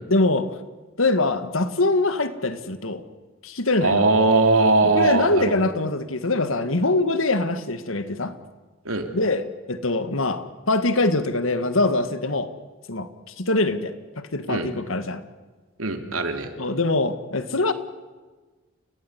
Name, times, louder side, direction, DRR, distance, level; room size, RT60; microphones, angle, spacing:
voice 1, 0.1-0.5 1.0-3.0 3.4-4.1 4.9-8.3 9.1-12.5 12.9-13.1 13.4-13.9 14.3-15.2 16.6-17.7, left 2 dB, 75° left, 11 dB, 1.7 m, -23 dB
voice 2, 3.8-5.5 8.8-9.0 14.5-14.7 15.8-16.5, right 3 dB, 85° right, 6 dB, 3.0 m, -20 dB
29.5 x 16.5 x 9.8 m, 1.3 s
head